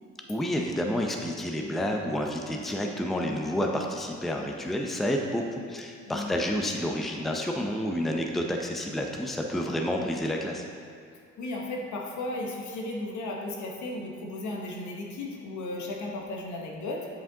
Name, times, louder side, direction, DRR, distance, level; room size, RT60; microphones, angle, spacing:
voice 1, 0.3-10.6, equal, ahead, 1 dB, 0.5 m, -29 dB
voice 2, 6.1-6.4 11.4-17.1, left 2 dB, 70° left, -1 dB, 1.1 m, -35 dB
7.6 x 5.0 x 2.8 m, 2.3 s
cardioid pair, 90°, 30 cm